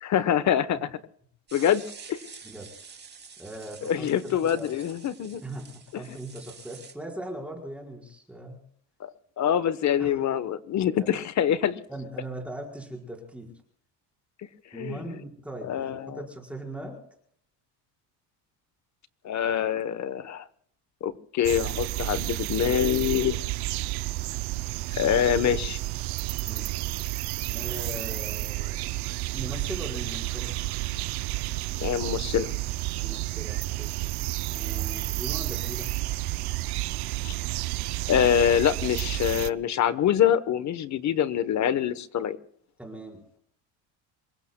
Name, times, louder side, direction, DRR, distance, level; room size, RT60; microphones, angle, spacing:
voice 1, 0.0-0.9 1.5-1.8 2.1-2.2 3.8-5.4 9.0-11.8 14.7-15.0 15.6-16.2 19.2-20.5 21.0-23.3 25.0-25.8 31.8-32.5 37.2-37.3 38.1-42.4, left 9 dB, 40° left, 14 dB, 1.1 m, -25 dB
sound 1, 1.5-6.9, right 6 dB, 25° right, 2.7 m, -48 dB
voice 2, 3.4-4.7 5.4-8.6 10.0-10.1 11.0-11.1 11.9-13.5 14.7-16.9 25.1-25.2 26.4-26.8 27.5-29.0 29.3-30.5 33.0-33.9 34.5-35.9 42.8-43.4, right 1 dB, 5° right, -1 dB, 4.8 m, -39 dB
sound 2, 21.4-39.5, right 18 dB, 65° right, 0.6 m, -31 dB
27.0 x 23.0 x 2.3 m, 0.63 s
cardioid pair, 135°, 41 cm